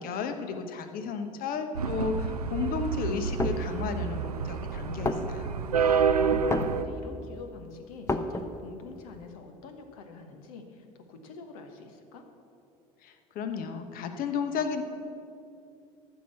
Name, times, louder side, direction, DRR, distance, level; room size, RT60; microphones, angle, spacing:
voice 1, 0.0-5.5 13.0-14.8, left 5 dB, 50° left, 8 dB, 1.0 m, -33 dB
sound 1, 1.7-6.8, right 6 dB, 90° right, 0.4 m, -28 dB
sound 2, 3.2-3.7 4.4-4.5 4.8-4.9 5.1-5.7 6.3-6.8 7.3-7.4 7.6-8.7, left 2 dB, 15° left, 0.8 m, -30 dB
voice 2, 6.0-12.3, left 4 dB, 70° left, 6 dB, 1.2 m, -46 dB
13.5 x 5.7 x 7.5 m, 2.6 s
figure-of-eight pair, 65°, 19 cm